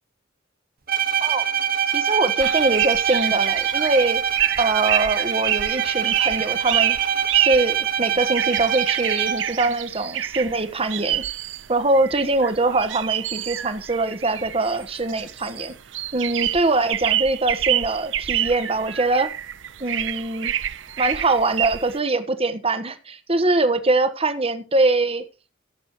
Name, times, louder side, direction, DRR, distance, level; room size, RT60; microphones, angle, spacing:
Bowed string instrument, 0.9-9.6, right 9 dB, 50° right, 1.3 m, -24 dB
voice 1, 1.2-1.5 1.9-7.0 7.3-11.2 11.7-15.8 16.1-19.3 19.8-20.5 21.0-25.2, right 2 dB, 30° right, 1.4 m, -23 dB
sound 1, 2.4-22.0, right 11 dB, 75° right, 0.7 m, -27 dB
17.0 x 8.5 x 3.1 m
head